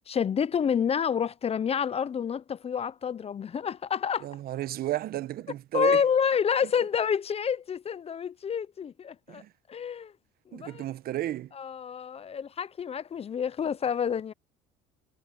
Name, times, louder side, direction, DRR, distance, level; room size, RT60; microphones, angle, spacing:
voice 1, 0.1-4.3 5.7-9.4 9.7-10.1 10.5-10.8 11.5-14.3, left 7 dB, 35° left, 0.7 m, -28 dB
voice 2, 4.2-6.0 9.3-9.5 10.5-11.5, right 14 dB, 60° right, 1.3 m, -33 dB
supercardioid pair, 75°, 18 cm